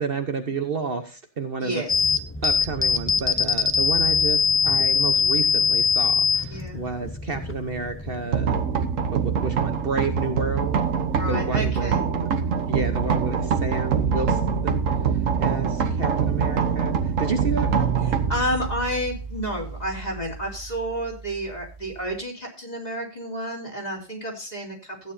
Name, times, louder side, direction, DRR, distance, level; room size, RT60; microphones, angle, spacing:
voice 1, 0.0-1.8 2.4-8.6 9.1-10.8 11.3-11.9 12.7-14.8 15.4-17.9, right 4 dB, 50° right, 6 dB, 1.2 m, -30 dB
voice 2, 1.6-2.1 6.4-6.9 11.0-12.0 18.1-25.1, equal, 35° left, -1 dB, 3.4 m, -31 dB
sound 1, 1.9-8.3, left 5 dB, 15° left, 0.4 m, -22 dB
sound 2, 8.3-22.2, right 6 dB, 90° right, 1.5 m, -25 dB
15.0 x 9.5 x 2.7 m, 0.36 s
omnidirectional pair, 1.3 m